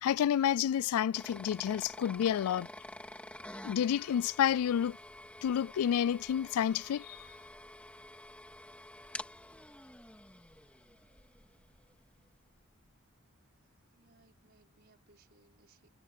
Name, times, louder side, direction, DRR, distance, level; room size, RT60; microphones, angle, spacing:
voice 1, 0.0-2.7 3.6-5.0 5.4-7.2, left 9 dB, 90° left, 0.3 m, -29 dB
sound 1, 1.1-11.9, left 1 dB, 5° left, 2.6 m, -49 dB
voice 2, 13.6-15.9, right 3 dB, 50° right, 5.5 m, -67 dB
head